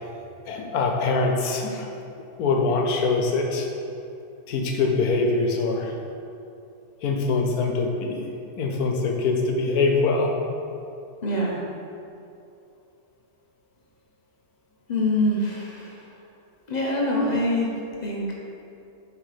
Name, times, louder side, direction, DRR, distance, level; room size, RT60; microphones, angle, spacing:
voice 1, 0.5-1.9 2.4-3.7 4.5-5.9 7.0-8.2 8.6-10.3, left 3 dB, 80° left, 1 dB, 1.2 m, -23 dB
voice 2, 11.2-11.6 14.9-16.1 16.7-18.3, left 1 dB, 40° left, -3 dB, 0.7 m, -25 dB
6.3 x 3.4 x 4.9 m, 2.6 s
omnidirectional pair, 1.6 m